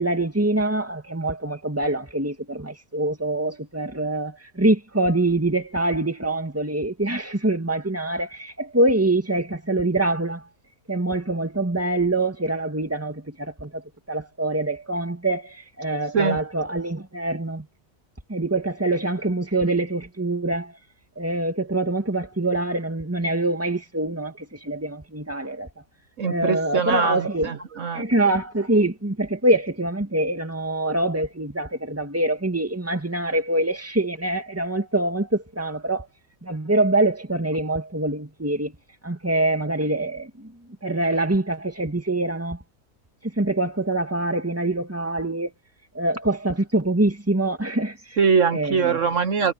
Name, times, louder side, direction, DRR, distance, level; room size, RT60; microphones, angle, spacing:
voice 1, 0.0-10.4 10.9-13.8 14.1-17.7 18.3-20.7 21.2-25.7 26.2-27.5 27.9-36.1 36.4-38.7 39.0-40.5 40.8-42.6 43.4-45.5 45.9-48.2 48.5-49.0, right 2 dB, 10° right, 2.2 m, -24 dB
voice 2, 26.2-28.1 48.2-49.5, right 5 dB, 60° right, 1.3 m, -22 dB
omnidirectional pair, 1.5 m